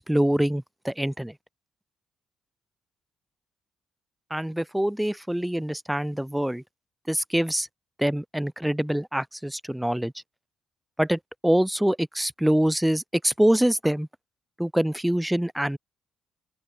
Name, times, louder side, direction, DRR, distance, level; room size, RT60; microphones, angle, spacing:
voice 1, 0.0-1.3 4.3-6.6 7.1-7.7 8.0-10.1 11.0-14.1 14.6-15.8, right 1 dB, 5° right, 5.9 m, -25 dB
open air
cardioid pair, 90°, 0 cm